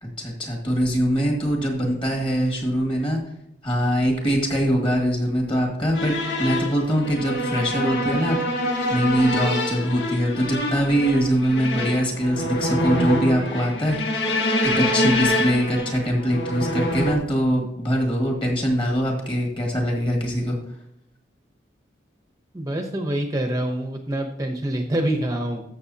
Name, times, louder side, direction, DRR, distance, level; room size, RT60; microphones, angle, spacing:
voice 1, 0.0-3.2 3.6-8.4 8.9-14.0 14.6-20.6, equal, 30° left, 1 dB, 2.0 m, -23 dB
sound 1, 5.9-17.1, left 1 dB, 70° left, 1.4 m, -25 dB
voice 2, 22.5-25.6, right 1 dB, 20° right, 3 dB, 0.8 m, -26 dB
13.5 x 6.6 x 2.8 m, 0.78 s
head